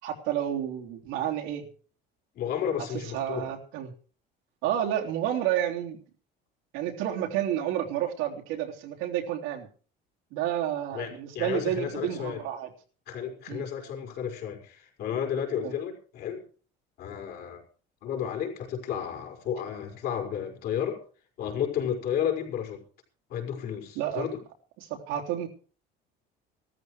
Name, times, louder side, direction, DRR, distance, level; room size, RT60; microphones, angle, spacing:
voice 1, 0.0-1.6 3.1-3.9 4.6-6.0 6.7-9.7 10.3-12.7 13.5-13.6 15.6-15.7 23.9-24.3 24.8-25.5, right 11 dB, 85° right, 3.5 m, -30 dB
voice 2, 2.3-3.5 10.9-12.4 13.1-16.4 17.0-17.6 18.0-21.0 21.4-22.8 23.3-24.4, left 8 dB, 55° left, 5.1 m, -32 dB
17.0 x 13.5 x 4.8 m
cardioid pair, 155°, 20 cm